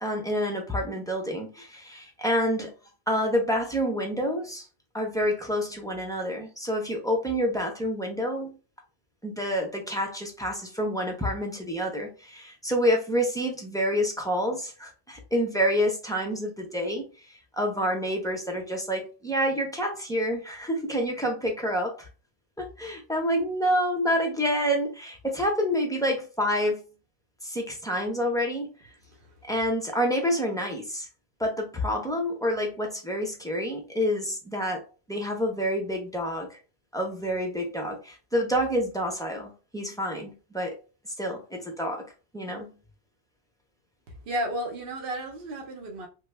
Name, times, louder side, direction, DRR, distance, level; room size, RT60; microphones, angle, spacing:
voice 1, 0.0-2.7 3.1-4.6 4.9-8.6 9.2-17.1 17.6-22.1 22.6-26.8 27.4-28.7 29.5-31.1 31.4-34.8 35.1-36.5 36.9-40.8 41.2-42.1 42.3-42.7, equal, 5° left, 0.4 m, -28 dB
voice 2, 44.1-46.1, equal, 60° right, 0.8 m, -33 dB
3.0 x 2.2 x 3.2 m
omnidirectional pair, 1.1 m